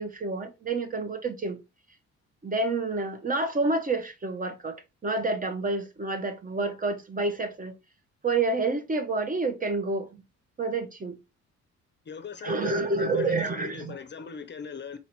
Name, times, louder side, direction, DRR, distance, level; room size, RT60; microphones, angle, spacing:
voice 1, 0.0-1.6 2.4-7.7 8.2-10.1 10.6-11.2 12.4-13.9, right 3 dB, 30° right, 0.9 m, -28 dB
voice 2, 12.0-15.0, left 6 dB, 35° left, 0.6 m, -40 dB
4.2 x 2.8 x 4.4 m
cardioid pair, 90°, 30 cm